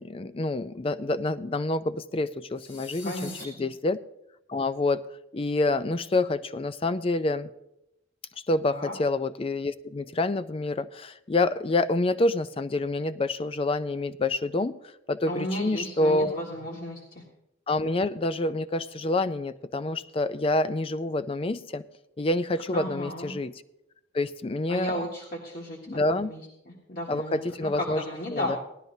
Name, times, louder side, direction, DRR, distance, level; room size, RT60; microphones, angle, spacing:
voice 1, 0.0-4.0 4.5-5.0 5.3-7.5 8.5-14.8 15.1-16.4 17.7-21.8 22.2-23.5 24.1-24.9 25.9-26.3 27.1-28.0 28.3-28.6, left 2 dB, 30° left, 13 dB, 0.4 m, -27 dB
sound 1, 2.6-3.4, left 4 dB, 70° left, 1.7 m, -44 dB
voice 2, 3.0-3.7 8.7-9.0 15.3-17.2 22.7-23.4 24.7-28.6, equal, 45° left, -2 dB, 1.7 m, -34 dB
18.0 x 12.0 x 2.7 m, 0.86 s
head